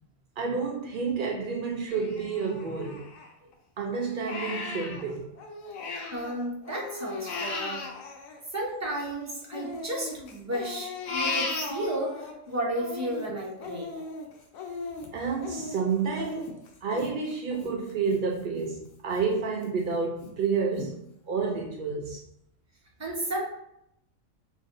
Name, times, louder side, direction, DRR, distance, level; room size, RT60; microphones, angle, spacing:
voice 1, 0.4-3.1 3.8-5.3 15.1-16.6 16.8-21.0 21.3-22.2, right 5 dB, 90° right, 0.4 m, -30 dB
Crying sobbing, 1.9-3.5 4.0-6.3 6.6-9.1 9.5-12.3 12.7-18.2 18.6-18.7 19.2-19.7 20.2-20.3 20.8-20.9, left 3 dB, 80° left, 1.0 m, -37 dB
voice 2, 6.1-7.9 8.5-14.1 23.0-23.4, right 1 dB, 15° right, 0.7 m, -33 dB
5.2 x 2.6 x 2.5 m
omnidirectional pair, 1.4 m